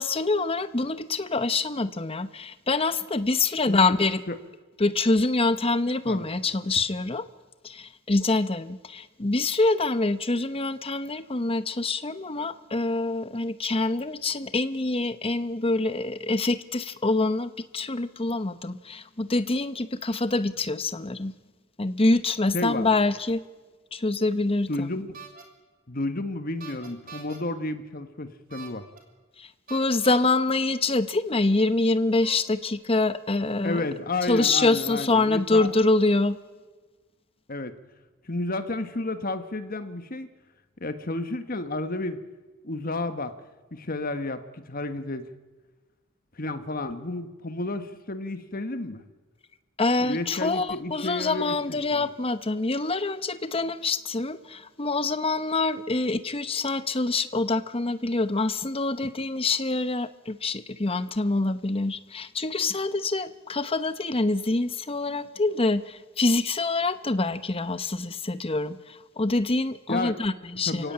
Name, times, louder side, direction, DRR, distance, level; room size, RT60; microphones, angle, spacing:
voice 1, 0.0-4.2 4.8-7.3 7.6-21.3 21.8-23.4 23.9-24.9 29.4-33.9 34.2-36.4 49.8-70.9, left 3 dB, 30° left, 12 dB, 0.9 m, -25 dB
voice 2, 3.7-4.0 4.3-4.4 6.0-6.3 22.5-22.9 24.7-25.2 25.9-28.8 33.6-35.7 37.5-37.7 38.2-40.3 40.8-42.2 42.6-43.4 43.7-45.3 46.4-49.0 50.0-52.1 69.9-70.2 70.7-70.9, left 2 dB, 45° left, 9 dB, 1.5 m, -31 dB
sound 1, 25.1-25.4 26.6-27.4 28.5-29.0 29.7-30.3 31.4-31.5 32.2-32.7, right 6 dB, 45° right, 3.6 m, -44 dB
28.5 x 16.5 x 8.7 m, 1.3 s
head